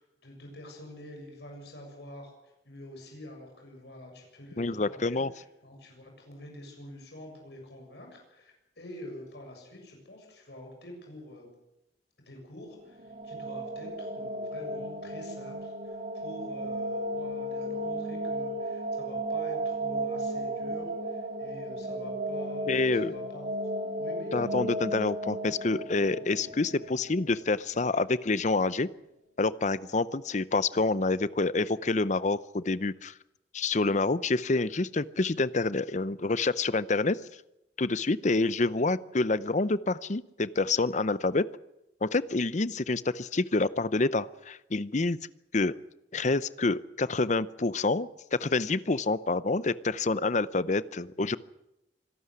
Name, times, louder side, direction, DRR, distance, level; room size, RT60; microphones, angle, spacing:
voice 1, 0.0-11.5 12.2-23.5 24.0-24.6, left 1 dB, 70° left, 2 dB, 7.1 m, -47 dB
voice 2, 4.6-5.3 22.7-23.1 24.3-28.9 29.4-33.1 33.5-37.2 37.8-41.4 42.0-45.2 45.5-45.7 46.1-51.4, left 3 dB, 40° left, 17 dB, 0.7 m, -27 dB
sound 1, 12.8-27.8, right 1 dB, 45° right, 2.2 m, -34 dB
25.5 x 12.5 x 9.7 m, 0.90 s
head